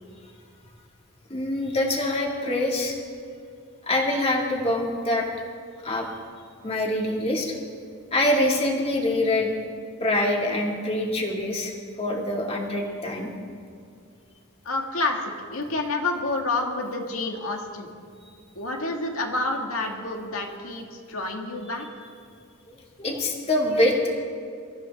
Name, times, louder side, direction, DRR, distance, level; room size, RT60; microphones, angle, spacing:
voice 1, 1.3-3.0 3.8-5.3 5.8-6.1 6.6-7.6 8.1-9.5 10.0-11.7 12.0-13.3 18.2-18.3 22.7-24.1, left 1 dB, 30° left, -1 dB, 2.3 m, -25 dB
voice 2, 14.6-17.9 18.6-22.0, left 2 dB, 75° left, 2 dB, 2.0 m, -29 dB
23.0 x 14.0 x 3.6 m, 2.4 s
head